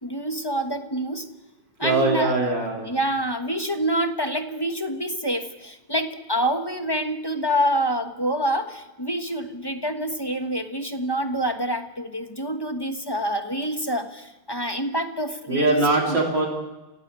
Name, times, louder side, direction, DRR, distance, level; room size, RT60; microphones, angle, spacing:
voice 1, 0.0-1.3 1.8-2.3 2.8-15.8 16.1-16.2, equal, 15° left, 6 dB, 1.1 m, -27 dB
voice 2, 1.8-2.9 15.5-16.5, right 2 dB, 85° right, 0 dB, 4.0 m, -22 dB
26.0 x 16.5 x 8.2 m, 1.1 s
omnidirectional pair, 1.9 m